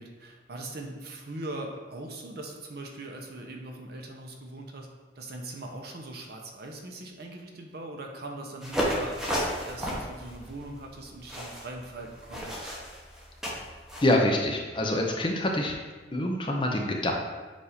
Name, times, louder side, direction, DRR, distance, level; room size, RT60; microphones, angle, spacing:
voice 1, 0.0-4.9 5.2-12.7, right 2 dB, 55° right, 2 dB, 0.8 m, -41 dB
sound 1, 8.6-14.1, equal, 5° right, 0.9 m, -33 dB
voice 2, 14.0-15.8 16.1-17.1, left 1 dB, 25° left, 0 dB, 0.7 m, -25 dB
7.3 x 2.7 x 5.0 m, 1.3 s
head